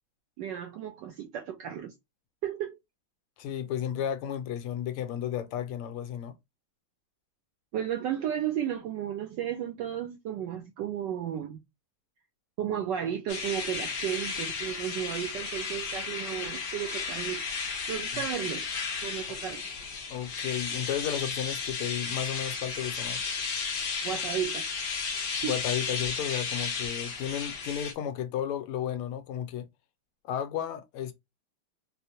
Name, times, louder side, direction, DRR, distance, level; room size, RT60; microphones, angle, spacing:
voice 1, 0.4-1.9 2.4-2.8 7.7-11.6 12.6-17.5 17.9-18.7 19.0-19.6 24.0-24.7 25.4-25.6, right 10 dB, 80° right, 1.0 m, -33 dB
voice 2, 3.4-6.3 18.1-18.2 19.3-19.4 20.1-23.2 25.4-29.7 30.2-31.1, left 10 dB, 80° left, 1.5 m, -33 dB
sound 1, 13.3-27.9, left 5 dB, 60° left, 1.4 m, -34 dB
4.5 x 2.1 x 2.7 m
omnidirectional pair, 2.4 m